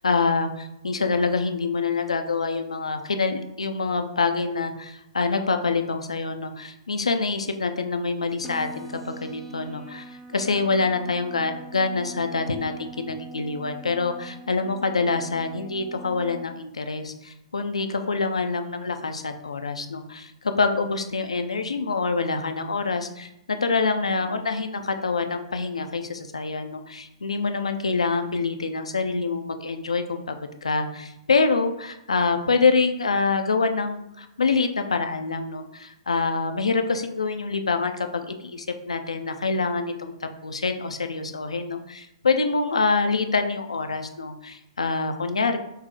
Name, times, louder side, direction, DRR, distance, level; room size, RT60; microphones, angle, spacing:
voice 1, 0.0-30.4 30.6-45.6, left 4 dB, 80° left, 7 dB, 0.3 m, -26 dB
sound 1, 8.4-16.4, right 2 dB, 5° left, 0.4 m, -43 dB
3.9 x 2.0 x 3.7 m, 0.84 s
figure-of-eight pair, 115°, 3 cm